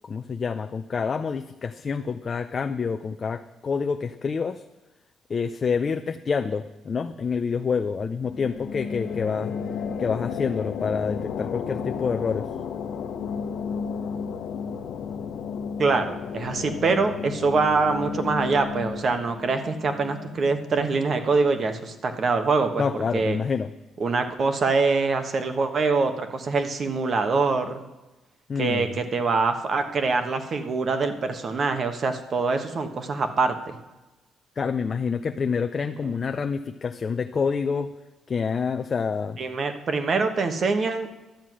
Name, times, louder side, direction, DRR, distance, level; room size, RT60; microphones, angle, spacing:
voice 1, 0.0-4.6 5.3-9.5 10.0-12.5 22.8-23.7 28.5-28.9 34.6-37.9 38.3-39.4, left 5 dB, 40° left, 7 dB, 0.5 m, -27 dB
sound 1, 8.2-21.6, left 6 dB, 75° left, 1.0 m, -33 dB
voice 2, 15.8-22.8 23.1-23.4 24.0-27.8 28.6-33.8 39.4-41.1, right 4 dB, 45° right, 7 dB, 1.3 m, -24 dB
11.5 x 7.5 x 6.2 m, 1.1 s
cardioid pair, 110°, 0 cm